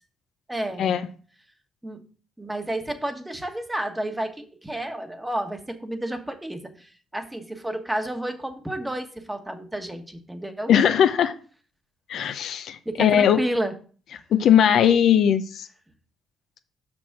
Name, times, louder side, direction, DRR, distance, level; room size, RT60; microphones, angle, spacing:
voice 1, 0.5-0.9 1.8-2.0 2.4-6.7 7.1-10.7 12.8-13.7, right 1 dB, 10° right, 1.4 m, -30 dB
voice 2, 10.7-11.3 12.1-13.4 14.3-15.7, left 9 dB, 70° left, 0.6 m, -19 dB
6.1 x 6.0 x 4.8 m
supercardioid pair, 65°, 0 cm